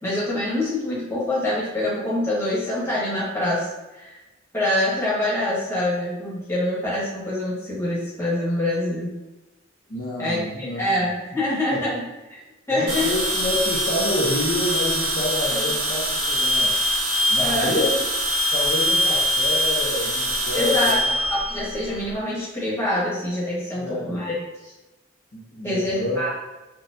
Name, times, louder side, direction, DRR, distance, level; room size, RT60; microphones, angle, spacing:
voice 1, 0.0-3.7 3.9-4.1 4.5-9.1 10.2-12.1 12.3-12.4 12.7-13.1 17.4-17.7 20.5-24.3 24.6-24.7 25.6-26.3, left 1 dB, 15° left, -8 dB, 1.1 m, -25 dB
voice 2, 9.9-11.1 11.7-11.8 12.7-16.8 17.3-17.9 18.5-21.1 23.7-24.2 25.3-26.2, left 1 dB, 50° left, -5 dB, 0.6 m, -28 dB
sound 1, 12.9-22.1, equal, 65° right, 1.3 m, -23 dB
4.1 x 2.1 x 2.5 m, 1.0 s
head